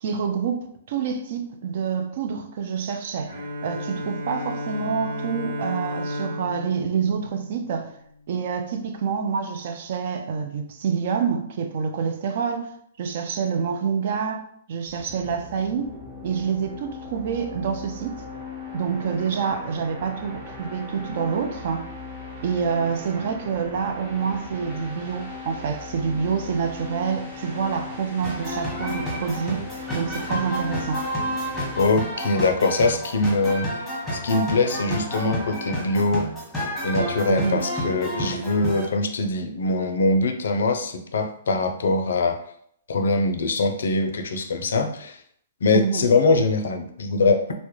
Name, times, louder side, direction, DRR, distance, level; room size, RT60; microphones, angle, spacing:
voice 1, 0.0-3.3 3.6-7.9 8.3-12.7 13.0-14.4 14.7-15.9 16.2-18.2 18.7-21.9 22.4-31.1 37.3-37.7 45.7-46.1, right 6 dB, 60° right, 6 dB, 0.4 m, -27 dB
Bowed string instrument, 3.3-8.2, left 1 dB, 75° right, 0.8 m, -33 dB
sound 1, 14.9-31.9, left 3 dB, 25° right, 1.0 m, -38 dB
sound 2, 28.2-38.9, equal, 5° left, 0.9 m, -30 dB
voice 2, 31.8-36.3 36.8-42.4 42.9-45.2 45.6-47.6, left 3 dB, 75° left, 5 dB, 0.4 m, -23 dB
2.2 x 2.0 x 2.9 m, 0.67 s
hypercardioid pair, 130°, 0 cm